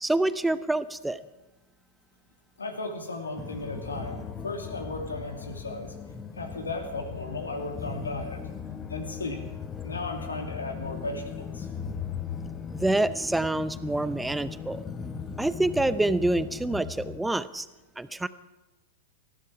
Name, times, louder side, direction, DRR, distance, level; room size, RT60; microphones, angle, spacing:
voice 1, 0.0-1.2 12.7-14.8 15.4-17.7 18.0-18.3, right 2 dB, 5° right, 15 dB, 0.7 m, -26 dB
voice 2, 2.6-5.9 6.3-8.4 8.9-9.4 9.8-11.7, left 2 dB, 85° left, 4 dB, 2.6 m, -35 dB
sound 1, 3.4-17.2, left 7 dB, 25° left, 1.2 m, -38 dB
19.5 x 14.0 x 5.0 m, 1.1 s
figure-of-eight pair, 100°, 0 cm